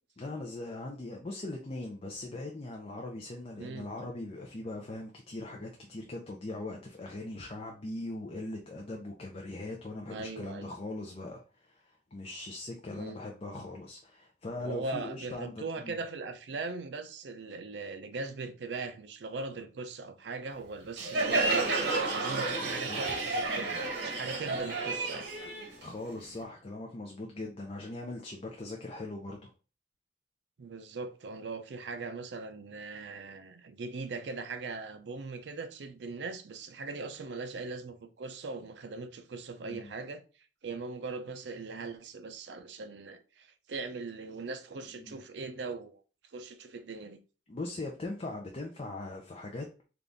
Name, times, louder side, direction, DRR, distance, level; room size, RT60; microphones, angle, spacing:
voice 1, 0.2-16.0 22.8-23.2 25.8-29.5 39.6-39.9 45.0-45.2 47.5-49.8, left 2 dB, 35° left, 0.5 m, -40 dB
voice 2, 10.1-10.7 12.9-13.2 14.6-21.7 22.1-25.3 30.6-40.2 40.6-46.0 46.3-47.2, right 3 dB, 75° right, 0.5 m, -40 dB
Crowd, 21.0-26.4, right 3 dB, 90° right, 1.1 m, -31 dB
3.9 x 2.4 x 3.4 m
head